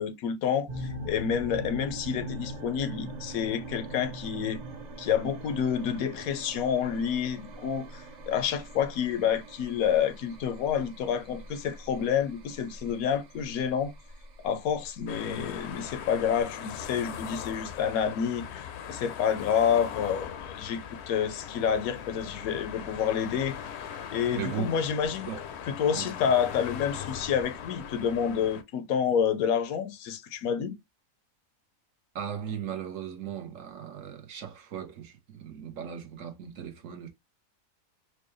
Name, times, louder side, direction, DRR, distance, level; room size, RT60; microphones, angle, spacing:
voice 1, 0.0-4.6 5.0-13.9 14.4-23.6 24.1-25.3 25.7-30.7, left 8 dB, 80° left, 1.1 m, -29 dB
sound 1, 0.7-16.4, right 1 dB, 40° right, 0.8 m, -42 dB
sound 2, 15.1-28.6, left 8 dB, 60° left, 0.8 m, -40 dB
voice 2, 24.4-24.7 25.3-25.4 25.9-26.1 32.1-37.1, right 8 dB, 65° right, 1.2 m, -37 dB
4.6 x 2.2 x 3.1 m
omnidirectional pair, 1.5 m